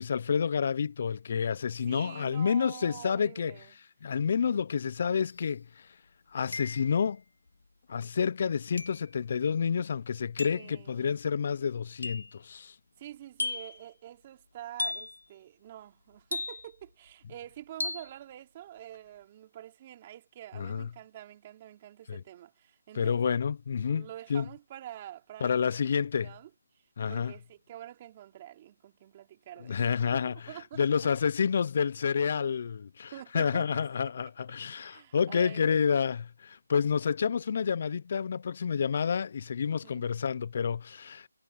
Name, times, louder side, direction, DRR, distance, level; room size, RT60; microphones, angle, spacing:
voice 1, 0.0-3.5 4.0-6.0 6.3-7.2 7.9-12.8 20.6-20.9 22.1-22.2 22.9-24.4 25.4-26.3 27.0-27.3 29.7-41.3, left 6 dB, 40° left, 0.4 m, -29 dB
voice 2, 1.8-3.7 10.5-11.2 13.0-23.3 23.9-25.6 26.2-30.2 30.5-31.1 33.1-34.3 34.7-35.9 39.7-40.1, right 12 dB, 25° right, 2.9 m, -47 dB
sound 1, 5.3-5.4 6.5-7.1 8.8-9.1 10.4-10.7 12.0-12.4 13.4-13.8 14.8-15.2 16.3-16.8 17.8-18.1, left 3 dB, 85° left, 2.4 m, -35 dB
hypercardioid pair, 170°, 0 cm